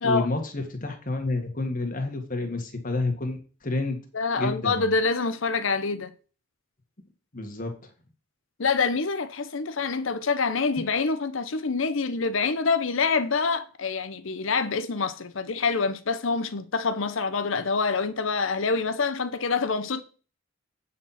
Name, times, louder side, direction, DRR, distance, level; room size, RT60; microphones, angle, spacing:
voice 1, 0.0-4.0 4.4-4.9 7.3-7.7, left 2 dB, 40° left, 1.8 m, -29 dB
voice 2, 4.1-6.1 8.6-20.0, left 4 dB, 70° left, 0.8 m, -26 dB
8.5 x 4.3 x 5.8 m
head